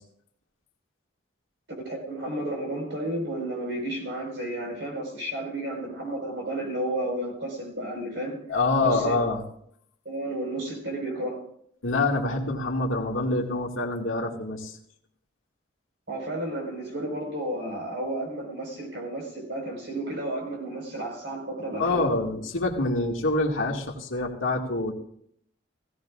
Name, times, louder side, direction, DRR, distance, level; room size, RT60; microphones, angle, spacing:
voice 1, 1.8-8.4 8.8-9.1 10.0-11.4 16.1-22.1, right 1 dB, 60° right, 1 dB, 4.8 m, -32 dB
voice 2, 8.5-9.4 11.8-14.7 21.8-24.9, left 2 dB, 90° left, 0 dB, 2.1 m, -26 dB
17.0 x 16.5 x 2.5 m, 0.68 s
head